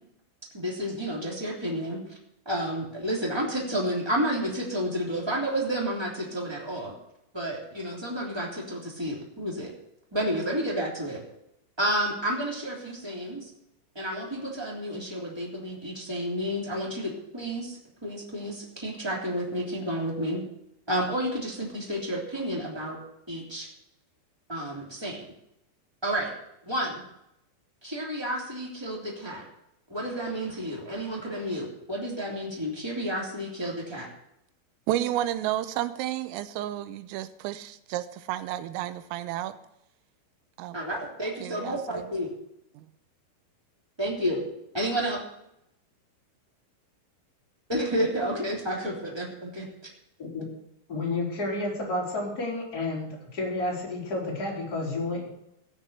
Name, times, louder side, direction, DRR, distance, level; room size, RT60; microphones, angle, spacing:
voice 1, 0.5-2.0 2.4-6.9 7.3-9.7 10.1-11.2 11.8-13.5 13.9-20.4 20.9-23.0 23.3-23.7 24.5-25.2 26.0-26.3 26.7-27.0 27.8-29.4 29.9-34.1 40.7-42.3 44.0-44.4 44.7-45.2 47.7-49.7, equal, 10° right, -3 dB, 1.9 m, -30 dB
voice 2, 34.9-39.5 40.6-40.8 41.4-42.1 42.8-42.9, right 13 dB, 90° right, 12 dB, 3.4 m, -31 dB
voice 3, 50.9-55.3, left 2 dB, 20° left, -4 dB, 3.6 m, -31 dB
16.0 x 7.4 x 6.8 m, 0.80 s
omnidirectional pair, 5.9 m